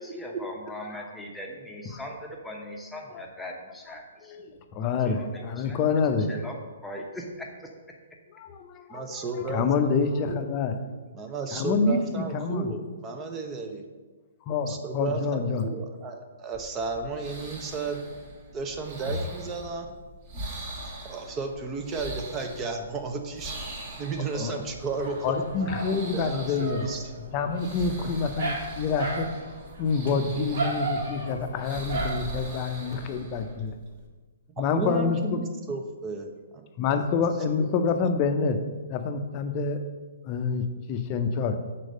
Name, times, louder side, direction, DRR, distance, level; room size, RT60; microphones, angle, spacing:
voice 1, 0.0-4.3 4.8-5.8 6.3-6.5 6.8-7.7, left 1 dB, 5° left, -1 dB, 1.0 m, -40 dB
voice 2, 4.7-6.3 8.3-9.0 9.5-10.8 11.5-12.7 14.5-15.7 24.3-24.5 25.2-26.9 27.2-29.3 29.8-33.7 34.6-35.4 36.8-38.6 38.9-39.8 40.2-41.6, left 5 dB, 30° left, 7 dB, 0.6 m, -27 dB
voice 3, 8.9-10.5 11.1-13.8 14.7-18.0 18.5-19.9 20.8-25.4 26.1-27.1 28.0-28.1 34.6-36.6 36.9-37.1, right 4 dB, 20° right, 4 dB, 0.7 m, -34 dB
sound 1, 16.5-34.1, right 1 dB, 40° right, 1.4 m, -41 dB
Dog, 24.8-33.0, right 2 dB, 60° right, 1.7 m, -35 dB
6.4 x 4.2 x 6.3 m, 1.4 s
figure-of-eight pair, 125°, 0 cm